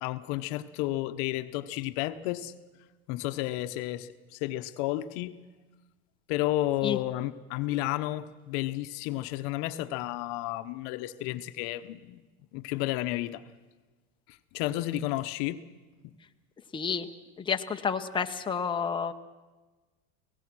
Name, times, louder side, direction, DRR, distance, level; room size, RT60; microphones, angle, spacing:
voice 1, 0.0-2.5 3.1-5.4 6.3-12.2 12.5-13.4 14.5-15.6, left 15 dB, 65° left, 11 dB, 1.0 m, -32 dB
voice 2, 16.7-17.1 17.4-19.1, left 6 dB, 15° left, 5 dB, 1.0 m, -30 dB
25.0 x 18.0 x 6.2 m, 1.2 s
supercardioid pair, 115°, 32 cm